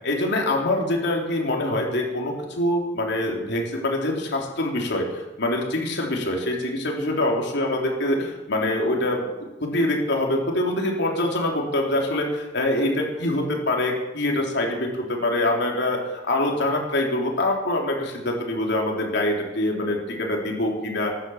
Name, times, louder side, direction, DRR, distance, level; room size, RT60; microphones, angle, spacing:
voice 1, 0.0-9.3 9.6-21.1, left 1 dB, 65° left, 0 dB, 3.6 m, -24 dB
14.0 x 11.5 x 7.3 m, 1.1 s
head